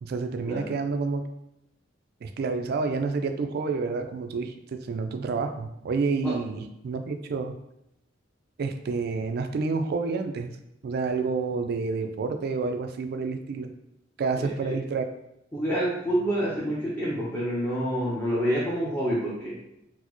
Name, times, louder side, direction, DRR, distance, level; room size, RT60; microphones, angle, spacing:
voice 1, 0.0-1.2 2.2-7.6 8.6-10.6 10.8-13.7 14.2-15.1, right 4 dB, 55° right, 7 dB, 0.3 m, -29 dB
voice 2, 14.4-14.8 15.5-19.6, equal, 10° left, -8 dB, 0.6 m, -28 dB
4.2 x 2.0 x 2.9 m, 0.82 s
head